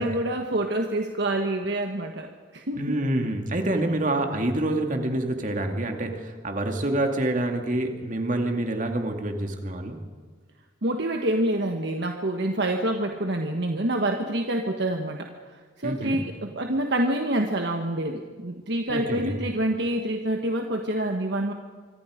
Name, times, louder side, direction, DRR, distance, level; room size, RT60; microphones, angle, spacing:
voice 1, 0.0-3.0 10.8-15.3 15.8-21.5, right 1 dB, 60° right, 3 dB, 1.4 m, -27 dB
voice 2, 2.7-10.0 15.8-16.2 18.9-19.2, right 1 dB, 40° right, 3 dB, 2.4 m, -27 dB
26.0 x 24.5 x 5.1 m, 1.5 s
head